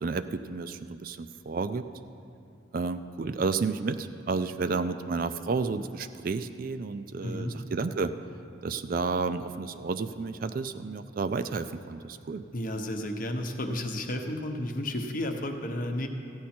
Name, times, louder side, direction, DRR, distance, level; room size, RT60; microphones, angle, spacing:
voice 1, 0.0-1.9 2.7-8.1 8.6-12.4, right 4 dB, 45° right, 10 dB, 0.3 m, -31 dB
voice 2, 7.2-7.6 12.5-16.1, left 1 dB, 45° left, 4 dB, 0.8 m, -32 dB
14.5 x 9.4 x 4.4 m, 2.7 s
head